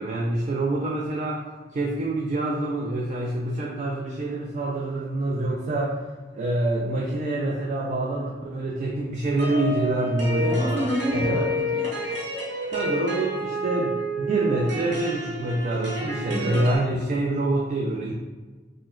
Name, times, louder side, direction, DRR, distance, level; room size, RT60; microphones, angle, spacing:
voice 1, 0.0-1.4 1.7-6.0 6.3-10.8 11.1-11.4 12.7-18.1, right 2 dB, 40° right, -2 dB, 0.3 m, -26 dB
sound 1, 9.4-16.8, equal, 70° right, 1.0 m, -30 dB
voice 2, 10.3-11.9 16.3-16.7, equal, 25° right, -10 dB, 1.4 m, -28 dB
4.1 x 2.0 x 2.3 m, 1.4 s
head